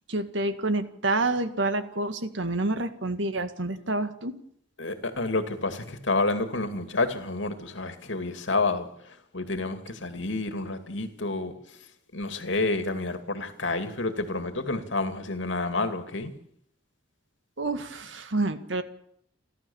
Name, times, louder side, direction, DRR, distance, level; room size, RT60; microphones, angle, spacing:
voice 1, 0.1-4.4 17.6-18.8, right 2 dB, 80° right, 2.0 m, -28 dB
voice 2, 4.8-11.8 12.1-16.3, left 3 dB, 80° left, 2.5 m, -29 dB
29.5 x 12.5 x 7.2 m
head